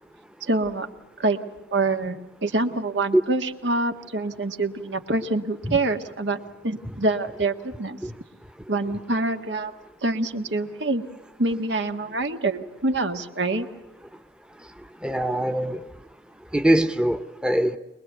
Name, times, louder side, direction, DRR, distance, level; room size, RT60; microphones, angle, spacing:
voice 1, 0.4-0.9 1.2-1.4 1.7-8.0 8.7-9.7 10.0-11.0 11.4-13.7, right 2 dB, 85° right, 6 dB, 1.8 m, -26 dB
voice 2, 15.0-15.8 16.5-17.8, right 1 dB, 5° right, 9 dB, 0.8 m, -22 dB
23.0 x 21.5 x 8.2 m, 0.97 s
head